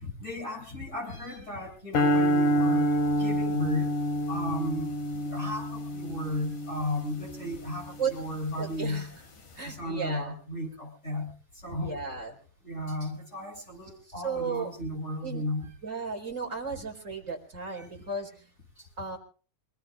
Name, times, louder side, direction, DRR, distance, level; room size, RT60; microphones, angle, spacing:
voice 1, 0.0-3.9 4.3-9.1 9.6-11.3 11.6-12.0 12.6-15.7 17.7-17.8, left 1 dB, 20° left, -3 dB, 8.3 m, -35 dB
sound 1, 1.9-8.3, equal, 70° left, 4.7 m, -28 dB
voice 2, 8.6-9.2 9.5-10.3 11.8-12.3 14.2-14.7 15.2-15.4 15.8-18.3 19.0-19.2, right 5 dB, 20° right, 1 dB, 4.6 m, -34 dB
27.5 x 19.0 x 2.5 m, 0.40 s
omnidirectional pair, 3.7 m